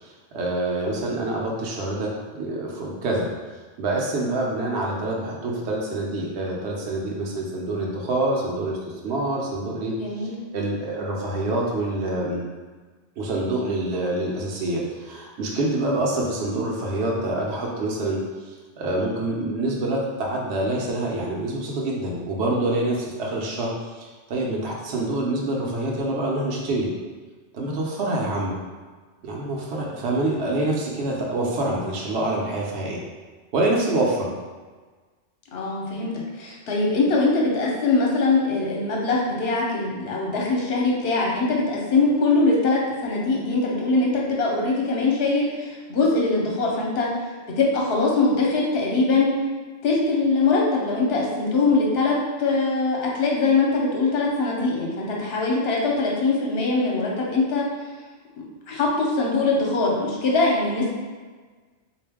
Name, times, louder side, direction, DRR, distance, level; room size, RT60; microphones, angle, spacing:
voice 1, 0.0-3.3 3.8-12.4 13.2-26.9 27.5-28.6 29.2-33.0 33.5-34.3, right 2 dB, 65° right, -2 dB, 0.9 m, -26 dB
voice 2, 10.0-10.4 35.5-36.1 36.4-47.1 47.6-49.3 49.8-57.6 58.7-60.9, left 3 dB, 60° left, -2 dB, 1.0 m, -22 dB
3.7 x 2.5 x 3.4 m, 1.4 s
omnidirectional pair, 1.3 m